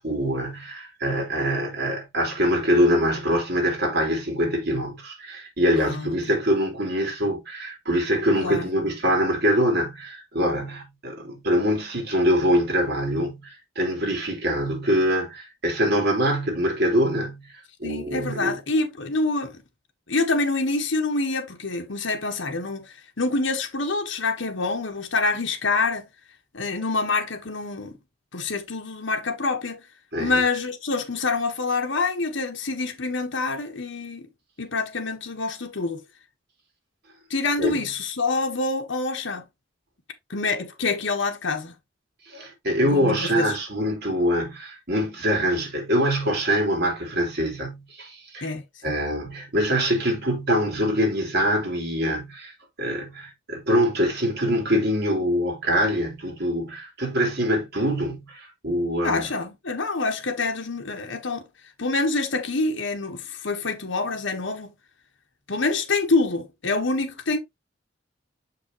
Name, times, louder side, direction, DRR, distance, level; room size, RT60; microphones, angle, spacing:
voice 1, 0.0-17.5 17.8-18.6 30.1-30.4 37.6-37.8 42.3-48.5 48.8-52.5 52.8-59.3, equal, 55° right, 3.3 m, -24 dB
voice 2, 5.8-6.1 8.3-8.7 17.8-19.6 20.1-26.1 26.5-27.9 28.3-29.8 30.2-34.3 34.6-36.0 37.3-39.4 40.3-41.7 42.8-43.6 48.4-49.0 59.0-61.5 61.8-64.7 65.5-67.4, left 3 dB, 70° left, 1.2 m, -26 dB
6.9 x 5.3 x 2.9 m
head